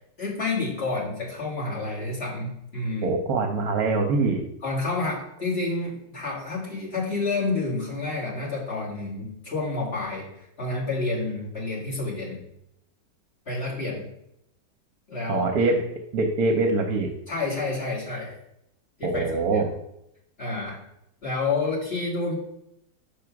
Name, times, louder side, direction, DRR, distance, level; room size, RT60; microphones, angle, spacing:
voice 1, 0.2-3.1 4.6-12.4 13.5-14.0 15.1-15.5 17.3-18.3 19.0-19.3 19.5-19.7 20.4-20.8 21.2-22.3, left 3 dB, 35° left, -6 dB, 2.3 m, -29 dB
voice 2, 3.0-4.4 15.3-15.8 16.1-17.1 19.0-19.7, right 3 dB, 65° right, 3 dB, 1.1 m, -23 dB
6.1 x 3.5 x 5.8 m, 0.80 s
omnidirectional pair, 1.9 m